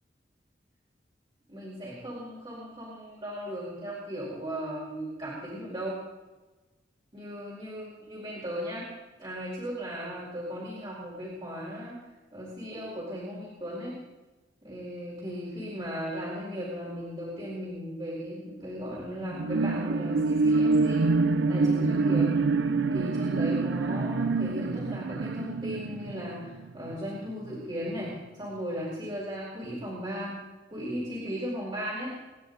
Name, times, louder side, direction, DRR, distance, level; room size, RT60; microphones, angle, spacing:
voice 1, 1.5-6.0 7.1-8.9 9.2-11.9 12.3-14.0 14.6-21.1 21.5-22.3 22.9-32.1, equal, 30° right, -7 dB, 4.8 m, -37 dB
sound 1, 19.3-27.1 27.5-27.6, right 3 dB, 90° right, 0.6 m, -26 dB
26.5 x 11.5 x 4.1 m, 1.2 s
head